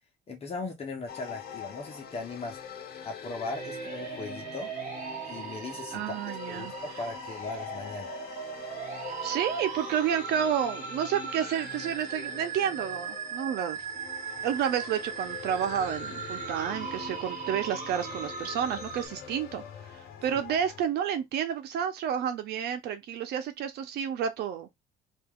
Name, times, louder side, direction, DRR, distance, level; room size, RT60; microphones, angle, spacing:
voice 1, 0.3-2.6 3.0-4.7 5.3-6.1 6.5-8.1 20.3-20.4, left 3 dB, 35° left, 1.1 m, -38 dB
sound 1, 1.1-20.8, left 7 dB, 65° left, 1.1 m, -44 dB
sound 2, 3.5-19.1, right 7 dB, 50° right, 1.1 m, -39 dB
voice 2, 5.9-6.7 9.2-13.8 14.4-19.6 19.9-24.7, right 9 dB, 75° right, 0.9 m, -30 dB
3.0 x 2.7 x 3.7 m
cardioid pair, 110°, 17 cm